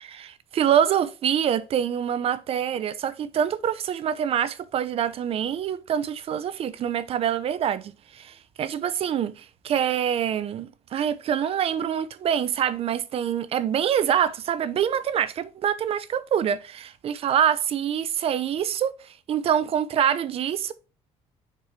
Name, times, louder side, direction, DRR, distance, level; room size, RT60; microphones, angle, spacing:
voice 1, 0.0-18.9 19.3-20.7, right 9 dB, 50° right, 0.6 m, -25 dB
6.7 x 4.6 x 3.1 m
cardioid pair, 115°, 13 cm